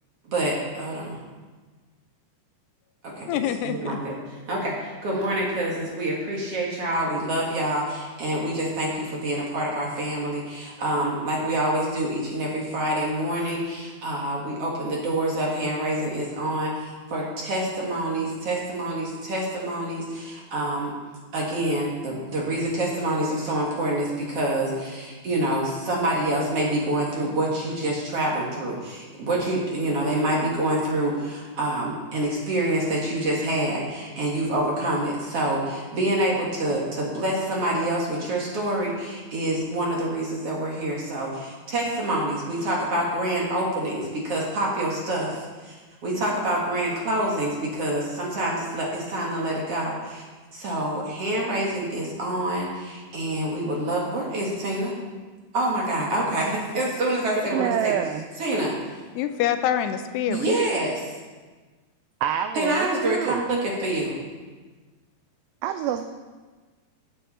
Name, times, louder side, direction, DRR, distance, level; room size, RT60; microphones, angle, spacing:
voice 1, 0.3-1.0 3.6-4.1 4.5-4.7 5.0-7.8 8.2-8.9 9.2-16.7 17.1-20.0 20.5-20.9 21.3-24.1 24.4-24.7 25.2-28.7 29.2-31.1 31.6-35.6 35.9-41.3 41.7-44.0 44.3-45.3 46.0-47.5 47.8-49.9 50.6-52.7 53.1-54.9 55.5-57.9 58.4-58.7 60.3-60.9 62.5-64.1, right 1 dB, 50° right, -3 dB, 2.0 m, -26 dB
voice 2, 3.3-4.0 59.2-60.5, left 10 dB, 85° left, 9 dB, 2.6 m, -25 dB
voice 3, 57.5-58.2 62.2-63.4 65.6-66.0, right 10 dB, 90° right, 8 dB, 2.1 m, -26 dB
15.0 x 7.8 x 4.2 m, 1.4 s
omnidirectional pair, 4.8 m